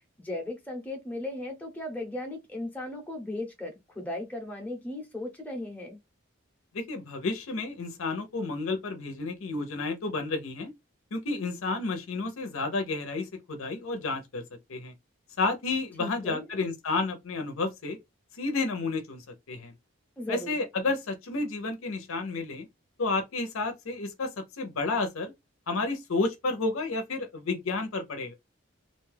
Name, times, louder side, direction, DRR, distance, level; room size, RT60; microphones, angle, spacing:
voice 1, 0.2-6.0 16.0-16.4 20.2-20.6, left 1 dB, 5° left, 0.6 m, -36 dB
voice 2, 6.7-10.7 11.1-14.4 14.7-14.9 15.4-18.0 18.3-19.2 19.5-19.7 20.3-22.7 23.0-24.3 24.6-25.3 25.7-28.3, left 3 dB, 80° left, 0.6 m, -31 dB
2.5 x 2.3 x 3.2 m
head